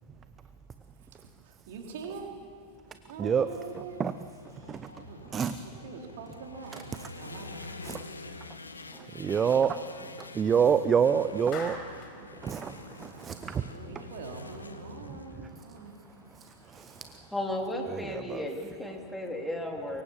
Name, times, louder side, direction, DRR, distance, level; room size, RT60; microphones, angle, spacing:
voice 1, 1.1-2.4 2.9-4.0 5.0-8.7 13.4-16.0, right 5 dB, 55° right, 2 dB, 3.5 m, -44 dB
sound 1, 3.5-18.2, left 3 dB, 80° left, 1.4 m, -47 dB
voice 2, 8.9-11.8 12.4-13.7 15.1-15.2 16.4-17.1 17.9-18.4, right 7 dB, 20° right, 12 dB, 0.7 m, -28 dB
Clapping, 11.5-12.2, left 4 dB, 35° left, 4.9 m, -40 dB
voice 3, 17.3-20.0, left 1 dB, 5° left, 1 dB, 3.3 m, -34 dB
24.5 x 23.0 x 7.3 m, 2.4 s
figure-of-eight pair, 90°, 0 cm